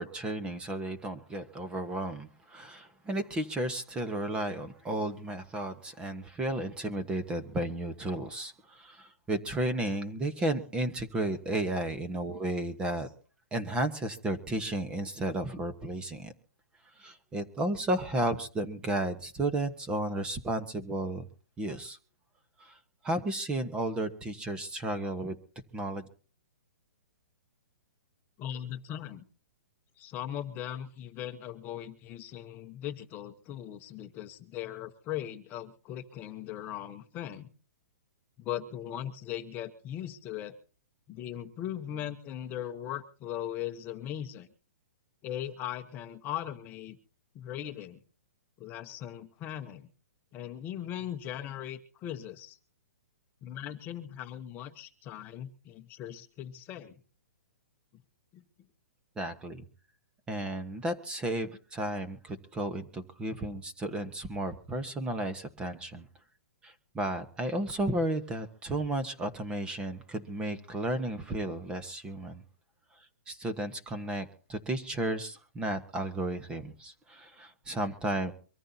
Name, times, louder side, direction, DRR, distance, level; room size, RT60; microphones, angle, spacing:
voice 1, 0.0-13.1 13.5-16.3 17.0-21.3 21.6-22.0 22.6-22.8 23.0-25.4 25.7-26.1 59.2-59.6 60.3-66.1 66.6-72.4 73.3-78.3, right 1 dB, 10° right, 9 dB, 1.2 m, -33 dB
voice 2, 28.4-29.2 30.0-37.5 38.4-40.6 41.1-44.5 45.2-47.0 47.3-48.0 48.6-49.9 50.3-52.6 53.4-56.9 58.3-58.4, left 11 dB, 20° left, 6 dB, 1.0 m, -39 dB
24.0 x 14.5 x 2.8 m, 0.39 s
hypercardioid pair, 155°, 8 cm